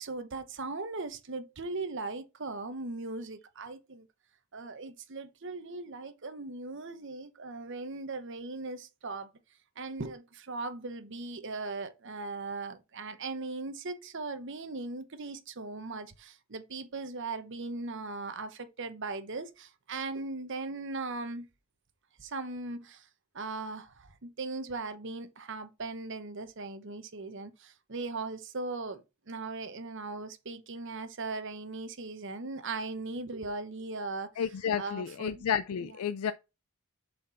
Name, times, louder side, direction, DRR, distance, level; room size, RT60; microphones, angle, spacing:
voice 1, 0.0-4.1 4.5-9.3 9.8-21.5 22.2-23.1 23.3-35.4 35.8-36.0, right 3 dB, 55° right, 0.9 m, -39 dB
voice 2, 34.4-36.3, left 7 dB, 80° left, 0.4 m, -31 dB
7.2 x 4.3 x 4.3 m
head